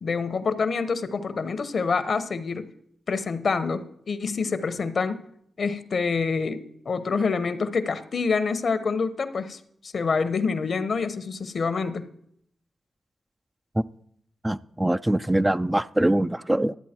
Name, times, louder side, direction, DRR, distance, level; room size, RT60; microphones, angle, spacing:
voice 1, 0.0-2.7 3.1-5.2 5.6-12.1, left 4 dB, 60° left, 12 dB, 0.9 m, -27 dB
voice 2, 14.4-16.8, right 1 dB, 15° right, 13 dB, 0.4 m, -23 dB
12.5 x 8.3 x 4.4 m, 0.71 s
supercardioid pair, 45°, 0 cm